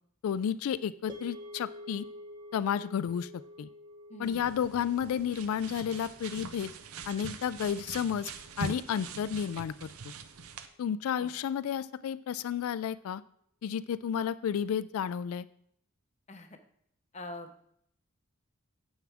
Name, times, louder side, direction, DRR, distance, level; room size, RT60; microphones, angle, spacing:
voice 1, 0.2-2.1 2.5-3.3 3.6-3.7 4.2-6.7 7.1-8.3 8.6-10.1 10.8-13.2 13.6-15.5, left 8 dB, 80° left, 15 dB, 0.3 m, -32 dB
sound 1, 1.1-9.4, left 1 dB, 20° right, 0.7 m, -50 dB
voice 2, 4.1-4.5 11.2-11.3 16.3-16.5 17.1-17.6, left 1 dB, 30° left, 6 dB, 0.8 m, -44 dB
sound 2, 4.2-10.7, right 4 dB, 80° right, 0.6 m, -43 dB
9.4 x 7.3 x 3.5 m, 0.68 s
head